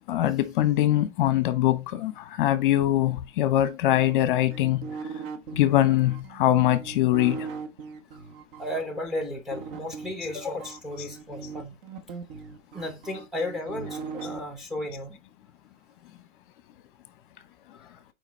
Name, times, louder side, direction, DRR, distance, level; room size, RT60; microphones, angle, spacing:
voice 1, 0.1-4.9 5.5-7.5 11.0-11.1, left 13 dB, 40° left, 0.9 m, -23 dB
sound 1, 4.1-8.8 9.5-14.4, right 5 dB, 45° right, 1.2 m, -39 dB
voice 2, 8.6-11.7 12.7-15.2 17.7-17.9, left 1 dB, ahead, 1.0 m, -34 dB
6.7 x 4.9 x 3.2 m
hypercardioid pair, 145°, 39 cm